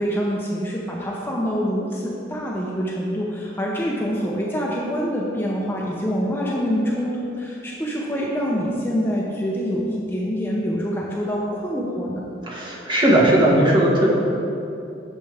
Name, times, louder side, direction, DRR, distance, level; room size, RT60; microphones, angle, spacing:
voice 1, 0.0-12.2, equal, 10° left, -4 dB, 0.7 m, -25 dB
voice 2, 12.5-14.1, right 1 dB, 25° right, -4 dB, 1.5 m, -17 dB
10.5 x 6.8 x 3.4 m, 2.7 s
head